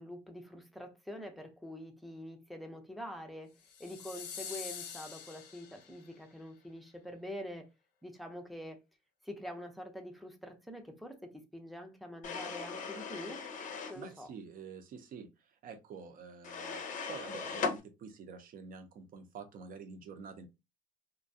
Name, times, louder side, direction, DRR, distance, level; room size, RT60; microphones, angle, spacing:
voice 1, 0.0-7.7 8.0-8.8 9.2-13.5 13.9-14.3, equal, ahead, 0.5 m, -45 dB
sound 1, 3.6-6.1, left 7 dB, 90° left, 0.6 m, -45 dB
sound 2, 12.2-14.0 16.4-17.8, left 5 dB, 50° left, 0.6 m, -38 dB
voice 2, 13.9-20.5, right 5 dB, 55° right, 0.6 m, -48 dB
2.5 x 2.2 x 2.6 m
cardioid pair, 110°, 17 cm